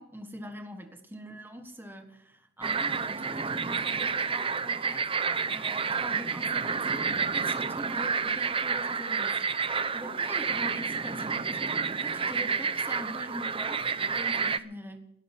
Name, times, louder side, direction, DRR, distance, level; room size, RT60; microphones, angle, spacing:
voice 1, 0.0-9.4 9.9-15.1, equal, 10° right, 5 dB, 1.5 m, -43 dB
sound 1, 2.6-14.6, right 5 dB, 30° right, 0.7 m, -30 dB
20.0 x 13.0 x 4.4 m, 0.78 s
head